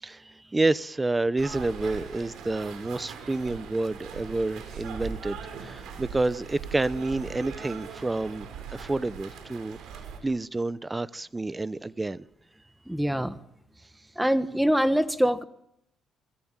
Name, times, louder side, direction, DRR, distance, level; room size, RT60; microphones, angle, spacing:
voice 1, 0.0-12.3, right 2 dB, 20° right, 16 dB, 0.8 m, -29 dB
sound 1, 1.4-10.2, right 6 dB, 80° right, 6.9 m, -41 dB
voice 2, 12.9-13.4 14.2-15.4, equal, 5° right, 11 dB, 1.6 m, -24 dB
25.5 x 19.0 x 9.0 m, 0.80 s
cardioid pair, 90°, 0 cm